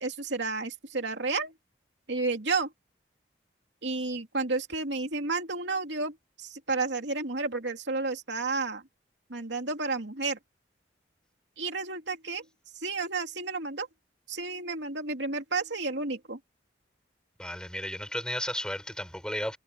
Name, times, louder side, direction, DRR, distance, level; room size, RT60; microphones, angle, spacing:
voice 1, 0.0-1.5 2.1-2.7 3.8-8.8 9.3-10.4 11.6-12.4 12.8-13.9 14.3-16.4, right 3 dB, 75° right, 2.7 m, -31 dB
voice 2, 17.4-19.6, left 1 dB, 5° left, 6.9 m, -34 dB
head